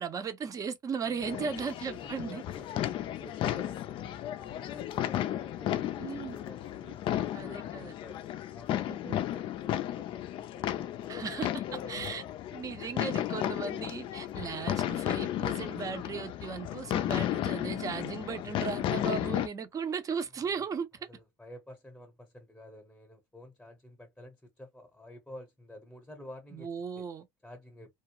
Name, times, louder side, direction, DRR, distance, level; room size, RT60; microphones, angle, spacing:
voice 1, 0.0-2.4 6.0-6.4 7.3-7.9 8.8-9.2 11.1-11.5 11.9-12.2 12.5-20.9 26.5-27.2, right 6 dB, 30° right, 0.6 m, -36 dB
voice 2, 1.0-8.2 8.5-11.4 11.7-12.3 12.8-13.2 20.4-27.1 27.4-27.9, left 1 dB, 5° left, 0.8 m, -51 dB
sound 1, 1.2-19.5, left 12 dB, 50° left, 0.4 m, -34 dB
2.3 x 2.0 x 2.9 m
supercardioid pair, 115°, 12 cm